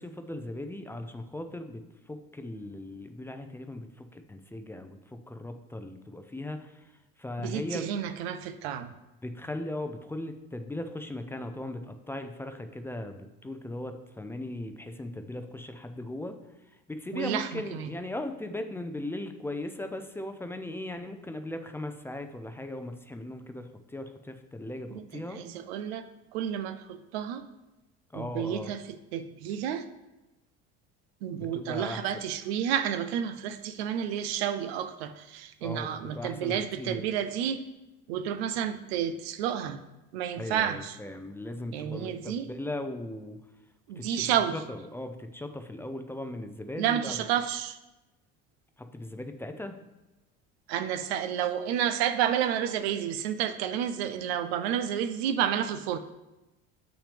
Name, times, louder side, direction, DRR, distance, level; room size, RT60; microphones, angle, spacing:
voice 1, 0.0-6.9 7.2-7.9 9.2-25.4 28.1-28.7 31.4-32.0 35.6-37.0 40.4-43.4 44.0-47.2 48.8-49.8, left 1 dB, 10° left, 7 dB, 0.5 m, -38 dB
voice 2, 7.4-8.9 17.1-17.9 24.9-26.1 26.3-27.4 28.1-29.9 31.2-37.6 38.1-39.8 40.1-41.0 41.7-42.5 43.9-44.6 46.8-47.8 50.7-56.0, right 9 dB, 85° right, 10 dB, 0.6 m, -30 dB
7.0 x 6.0 x 3.4 m, 1.0 s
supercardioid pair, 100°, 30 cm